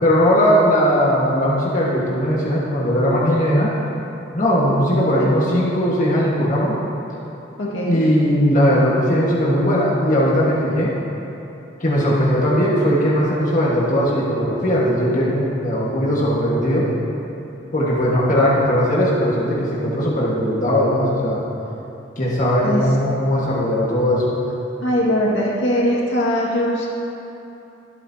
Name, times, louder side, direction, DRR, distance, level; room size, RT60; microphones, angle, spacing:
voice 1, 0.0-3.7 4.3-6.8 7.8-10.9 11.8-16.9 17.7-21.4 22.2-24.4, equal, 40° left, -6 dB, 1.6 m, -18 dB
voice 2, 7.6-8.0 22.6-22.8 24.8-26.9, equal, 70° left, -4 dB, 2.0 m, -20 dB
23.0 x 8.1 x 2.8 m, 2.9 s
head